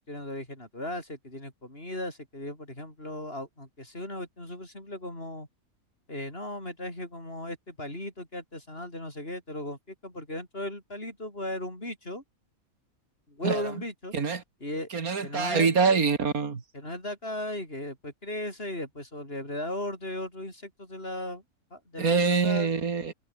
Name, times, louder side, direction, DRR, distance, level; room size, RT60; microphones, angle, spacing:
voice 1, 0.0-5.5 6.1-12.2 13.3-14.1 14.6-14.9 15.2-15.8 16.7-21.4 21.7-22.7, left 1 dB, 40° left, 8.3 m, -37 dB
voice 2, 14.9-16.6 22.0-23.1, right 5 dB, 85° right, 2.6 m, -25 dB
omnidirectional pair, 1.5 m